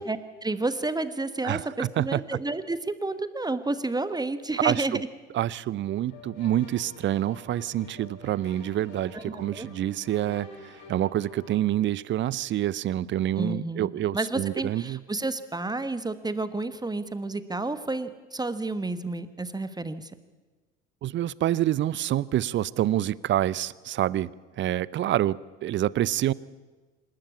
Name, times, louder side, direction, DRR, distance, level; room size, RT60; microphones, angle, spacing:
voice 1, 0.1-5.1 9.1-9.7 13.4-20.1, right 2 dB, 10° right, 13 dB, 1.2 m, -30 dB
voice 2, 1.4-2.4 4.6-5.0 5.3-15.0 21.0-24.3 24.6-26.3, right 12 dB, 30° right, 22 dB, 0.6 m, -27 dB
sound 1, 6.1-11.7, left 3 dB, 60° left, 5.4 m, -47 dB
27.0 x 12.5 x 8.6 m, 1.3 s
figure-of-eight pair, 60°, 37 cm